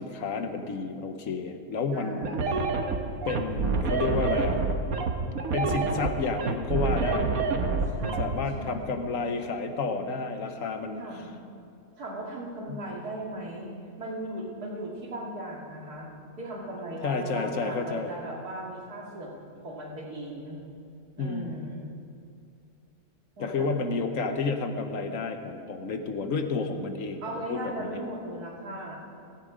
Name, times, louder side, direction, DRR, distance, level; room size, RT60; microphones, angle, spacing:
voice 1, 0.0-2.3 3.2-4.6 5.5-7.3 8.2-11.0 12.7-12.8 17.0-18.1 21.2-21.6 23.4-28.0, left 4 dB, 60° left, 7 dB, 1.4 m, -30 dB
voice 2, 1.9-2.5 7.9-9.1 11.0-11.4 12.0-16.1 16.4-19.3 19.6-20.6 21.1-21.9 23.4-23.7 27.2-29.0, right 1 dB, 90° right, -2 dB, 3.0 m, -37 dB
sound 1, 2.2-8.2, right 4 dB, 70° right, 1.5 m, -27 dB
16.0 x 15.0 x 5.1 m, 2.4 s
omnidirectional pair, 1.6 m